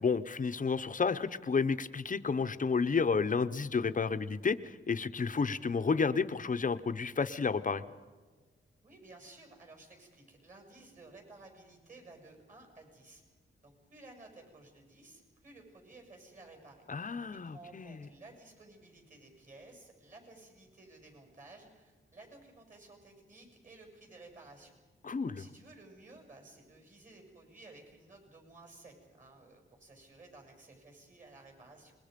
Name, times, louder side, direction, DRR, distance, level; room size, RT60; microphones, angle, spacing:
voice 1, 0.0-7.8 16.9-18.0 25.0-25.4, left 5 dB, 40° left, 12 dB, 0.8 m, -31 dB
voice 2, 8.8-13.2 13.6-16.8 17.3-24.7 25.2-31.9, right 2 dB, 35° right, 3 dB, 6.6 m, -55 dB
26.5 x 21.5 x 5.2 m, 1.4 s
wide cardioid pair, 100°, 21 cm